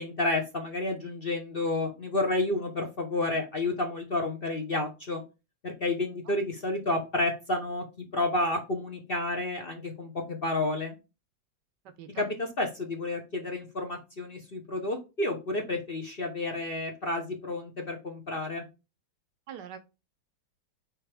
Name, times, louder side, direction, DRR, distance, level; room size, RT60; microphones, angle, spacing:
voice 1, 0.0-5.2 5.6-7.8 8.1-11.0 12.2-18.6, left 2 dB, 40° left, 3 dB, 0.9 m, -30 dB
voice 2, 11.8-12.3 19.5-19.8, right 8 dB, 70° right, 11 dB, 1.2 m, -43 dB
8.7 x 3.3 x 3.4 m, 0.28 s
omnidirectional pair, 2.0 m